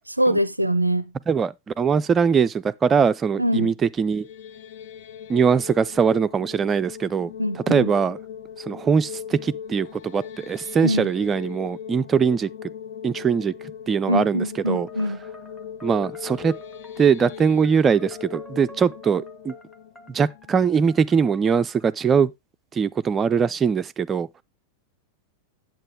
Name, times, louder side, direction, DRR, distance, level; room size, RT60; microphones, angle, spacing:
voice 1, 0.1-1.1 3.4-3.7 7.4-7.9 10.8-11.1 14.1-15.2, equal, 85° right, 0.4 m, -23 dB
voice 2, 1.3-4.3 5.3-8.2 8.6-12.5 13.0-13.5 13.9-14.9 15.8-16.5 17.0-19.5 20.1-22.3 22.7-24.3, right 6 dB, 20° right, 0.4 m, -21 dB
sound 1, 4.0-21.1, left 8 dB, 55° left, 0.7 m, -39 dB
sound 2, 14.6-21.9, right 1 dB, 5° left, 1.3 m, -48 dB
8.9 x 7.7 x 3.4 m
figure-of-eight pair, 90°, 0 cm